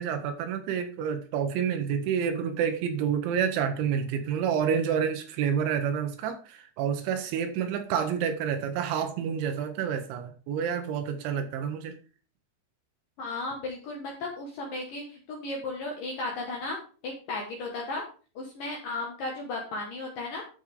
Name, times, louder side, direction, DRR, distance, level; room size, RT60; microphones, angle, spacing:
voice 1, 0.0-12.0, right 7 dB, 75° right, 3.1 m, -29 dB
voice 2, 13.2-16.8 17.0-18.0 18.4-20.4, left 2 dB, 65° left, 2.3 m, -35 dB
12.0 x 6.2 x 3.8 m
omnidirectional pair, 5.9 m